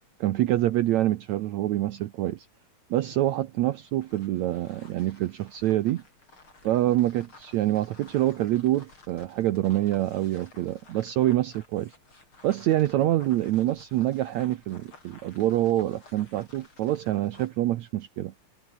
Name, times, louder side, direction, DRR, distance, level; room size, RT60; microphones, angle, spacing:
voice 1, 0.2-2.5 2.9-6.0 6.6-11.9 12.4-18.3, right 14 dB, 75° right, 1.7 m, -26 dB
sound 1, 3.9-17.6, left 3 dB, 35° left, 6.4 m, -55 dB
omnidirectional pair, 4.1 m